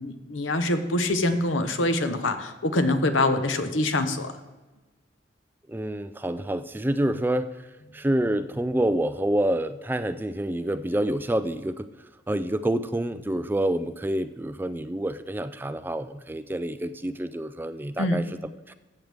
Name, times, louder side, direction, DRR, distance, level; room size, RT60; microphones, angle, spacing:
voice 1, 0.0-4.4 18.0-18.2, left 2 dB, 85° left, 8 dB, 1.0 m, -25 dB
voice 2, 5.7-7.5 7.9-11.9 12.3-18.2 18.7-18.8, right 1 dB, 10° right, 12 dB, 0.3 m, -27 dB
14.0 x 7.9 x 3.5 m, 1.2 s
head